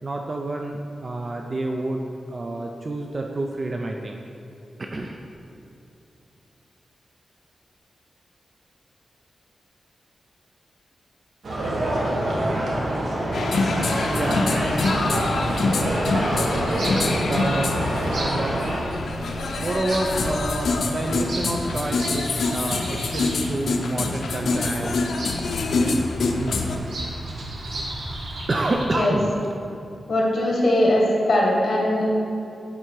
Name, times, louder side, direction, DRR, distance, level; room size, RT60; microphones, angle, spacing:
voice 1, 0.0-4.2 4.8-5.2 12.3-12.9 13.2-14.6 17.2-17.9 18.1-18.7 19.1-19.3 19.6-25.1 25.7-26.6 28.5-29.3, right 2 dB, 40° right, 2 dB, 0.4 m, -29 dB
sound 1, 11.4-18.8, right 1 dB, 70° right, 1.3 m, -26 dB
sound 2, 13.3-26.8, left 3 dB, 80° left, 0.5 m, -25 dB
Bird vocalization bird call bird song, 14.2-28.9, right 1 dB, 85° right, 1.2 m, -35 dB
voice 2, 30.1-32.1, left 1 dB, 60° left, -2 dB, 1.7 m, -20 dB
10.0 x 3.7 x 4.6 m, 2.7 s
wide cardioid pair, 125°, 0 cm